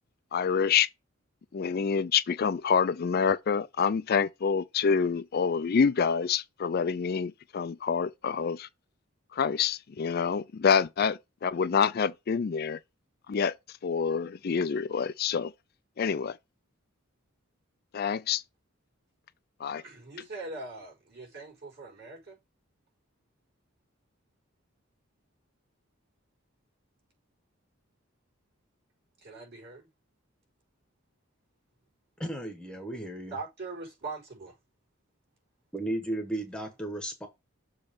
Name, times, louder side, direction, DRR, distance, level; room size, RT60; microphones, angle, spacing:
voice 1, 0.3-0.9 1.5-8.7 9.3-12.8 13.3-13.5 13.8-15.5 16.0-16.4 17.9-18.4 19.6-19.8, left 6 dB, 45° left, 0.4 m, -27 dB
voice 2, 19.7-22.4 29.2-29.9 33.3-34.6, right 3 dB, 50° right, 5.0 m, -41 dB
voice 3, 32.2-33.4 35.7-37.3, right 1 dB, 5° left, 1.1 m, -34 dB
7.1 x 3.1 x 5.1 m
head